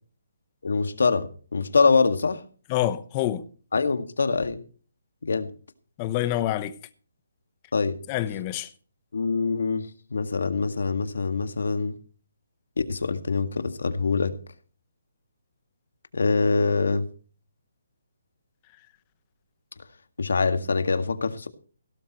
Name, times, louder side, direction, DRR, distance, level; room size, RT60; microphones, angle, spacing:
voice 1, 0.6-2.4 3.7-4.6 5.2-5.5 7.7-8.0 9.1-11.9 12.8-14.3 16.1-17.1 20.2-21.5, left 4 dB, 75° left, 1.9 m, -24 dB
voice 2, 2.7-3.4 6.0-6.7 8.1-8.7, left 13 dB, 20° left, 0.9 m, -26 dB
17.0 x 12.5 x 3.1 m
hypercardioid pair, 170°, 0 cm